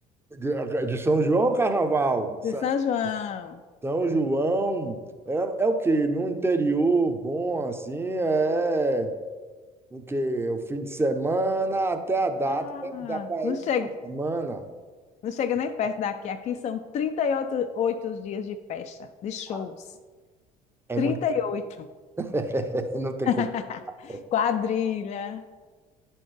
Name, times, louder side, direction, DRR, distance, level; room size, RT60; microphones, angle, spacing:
voice 1, 0.3-2.7 3.8-9.1 9.9-13.6 14.1-14.7 19.5-19.7 20.9-21.2 22.2-23.4 24.1-24.2, right 2 dB, 15° right, 7 dB, 0.7 m, -26 dB
voice 2, 2.4-3.6 12.5-13.9 15.2-19.8 21.0-21.9 23.3-25.4, left 7 dB, 40° left, 8 dB, 0.4 m, -28 dB
10.5 x 4.3 x 3.3 m, 1.4 s
hypercardioid pair, 60°, 19 cm